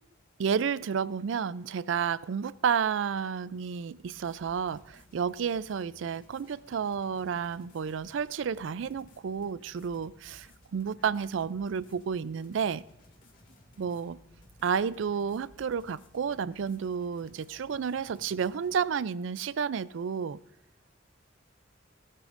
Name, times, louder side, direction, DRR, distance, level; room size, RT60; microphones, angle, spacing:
voice 1, 0.4-10.5 10.7-12.8 13.8-14.2 14.6-20.4, right 6 dB, 65° right, 19 dB, 0.4 m, -31 dB
sound 1, 3.9-18.8, left 1 dB, 40° left, 2.3 m, -58 dB
18.5 x 12.0 x 2.5 m, 0.81 s
head